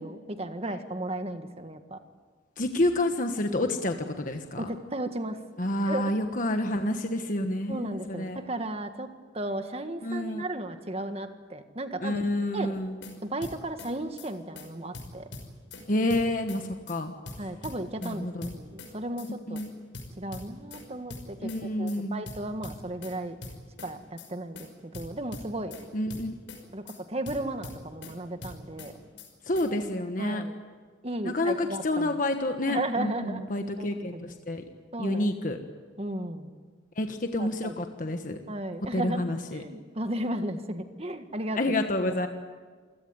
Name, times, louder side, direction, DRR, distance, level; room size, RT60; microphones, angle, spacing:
voice 1, 0.0-2.0 4.6-5.4 5.9-6.1 7.7-9.1 9.3-12.2 12.5-12.8 13.2-15.3 17.4-19.6 20.2-21.5 21.8-23.4 23.8-25.8 26.7-28.9 30.2-30.5 31.0-32.2 32.7-33.5 33.8-33.9 34.1-34.3 34.9-35.3 36.0-36.5 37.4-37.7 38.5-39.2 39.5-41.6 42.1-42.2, right 1 dB, 35° right, 7 dB, 1.7 m, -34 dB
voice 2, 2.6-4.7 5.6-8.4 10.0-10.4 12.0-13.0 15.9-17.1 18.0-18.5 19.5-19.7 21.4-22.2 25.9-26.3 29.5-30.4 31.2-34.6 35.0-35.6 37.0-38.4 38.9-39.6 41.5-42.3, left 1 dB, 45° left, 5 dB, 1.4 m, -29 dB
sound 1, 12.8-13.1 13.4-13.9 14.2-14.3 14.6-14.7 14.9-15.8 16.1-16.6 16.9-17.0 17.3-18.1 18.4-18.9 19.2-19.3 19.6-19.7 19.9-20.8 21.1-21.6 21.9-22.0 22.3-23.1 23.4-23.9 24.2-24.3 24.6-24.7 24.9-25.8 26.1-26.6 26.9-27.0 27.3-28.1 28.4-28.9 29.2-29.3 29.6-29.7, left 2 dB, 85° left, 5.7 m, -42 dB
28.0 x 17.0 x 9.5 m, 1.5 s
head